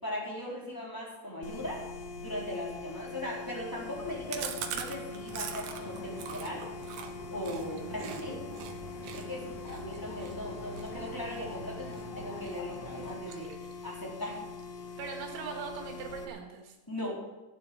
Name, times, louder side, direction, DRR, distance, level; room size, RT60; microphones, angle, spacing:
voice 1, 0.0-1.8 2.2-6.7 7.3-8.4 9.1-13.5 13.8-14.5 16.9-17.2, left 1 dB, 5° left, -5 dB, 4.0 m, -38 dB
sound 1, 1.4-16.3, left 4 dB, 75° left, 1.8 m, -43 dB
sound 2, 3.9-13.2, left 1 dB, 50° left, 4.2 m, -46 dB
Chewing mastication, 4.3-8.2 8.5-8.7 9.0-12.0 12.4-12.8 13.0-13.9 14.2-14.3 14.6-14.7 15.0-15.6, right 8 dB, 70° right, 3.1 m, -42 dB
voice 2, 7.7-8.5 13.3-13.4 15.0-16.8, right 5 dB, 90° right, 1 dB, 4.2 m, -42 dB
16.0 x 8.3 x 8.8 m, 1.1 s
omnidirectional pair, 5.2 m